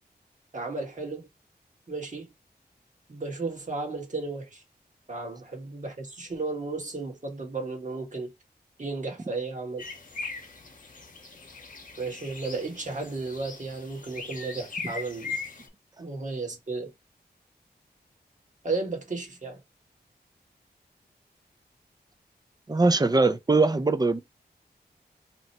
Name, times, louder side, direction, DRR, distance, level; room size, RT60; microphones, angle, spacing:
voice 1, 0.5-1.3 1.9-2.3 3.1-4.6 5.1-8.3 8.8-9.8 12.0-15.4 16.0-16.9 18.6-19.6, right 3 dB, 45° right, 1.3 m, -34 dB
sound 1, 9.8-15.7, left 4 dB, 50° left, 0.9 m, -40 dB
voice 2, 22.7-24.2, right 3 dB, 25° right, 0.5 m, -21 dB
2.9 x 2.1 x 4.1 m
cardioid pair, 55°, 17 cm